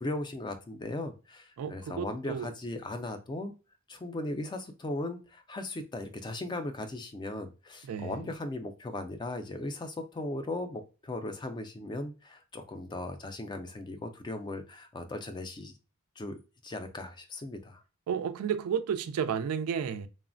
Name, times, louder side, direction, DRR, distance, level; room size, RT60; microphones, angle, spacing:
voice 1, 0.0-3.5 3.9-15.7 16.2-17.8, left 2 dB, 20° left, 0.3 m, -38 dB
voice 2, 1.6-2.5 7.8-8.3 18.1-20.1, right 7 dB, 85° right, 0.3 m, -32 dB
3.0 x 2.0 x 2.5 m
head